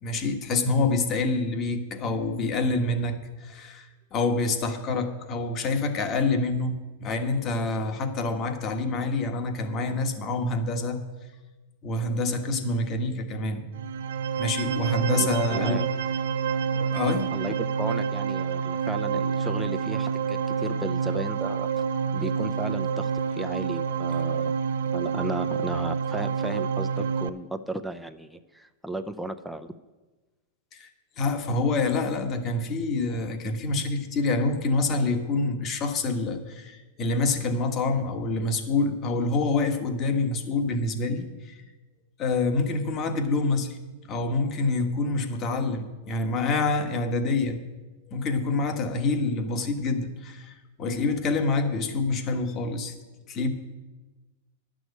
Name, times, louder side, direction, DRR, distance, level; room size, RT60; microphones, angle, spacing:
voice 1, 0.0-11.0 11.8-13.6 14.4-15.8 16.7-17.3 30.7-30.9 31.2-41.6 42.2-43.8 44.1-47.6 48.1-52.9 53.3-53.5, left 3 dB, 30° left, 6 dB, 1.3 m, -27 dB
sound 1, 13.7-27.3, right 6 dB, 80° right, 0.5 m, -28 dB
voice 2, 15.1-15.9 17.3-21.7 22.1-23.1 23.4-24.5 24.9-29.7, right 1 dB, ahead, 5 dB, 0.5 m, -35 dB
10.5 x 6.3 x 8.3 m, 1.2 s
supercardioid pair, 140°, 0 cm